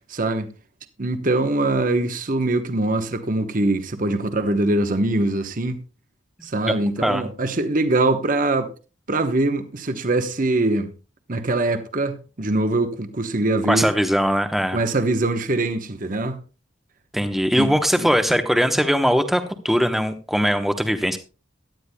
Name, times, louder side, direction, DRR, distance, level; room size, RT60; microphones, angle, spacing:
voice 1, 0.1-0.5 1.0-5.8 6.4-8.7 9.1-10.9 11.3-13.9 14.7-16.4 17.6-18.1, right 2 dB, 45° right, 1.0 m, -23 dB
voice 2, 13.7-14.8 17.1-21.2, equal, ahead, 0.9 m, -20 dB
17.0 x 11.5 x 2.2 m
head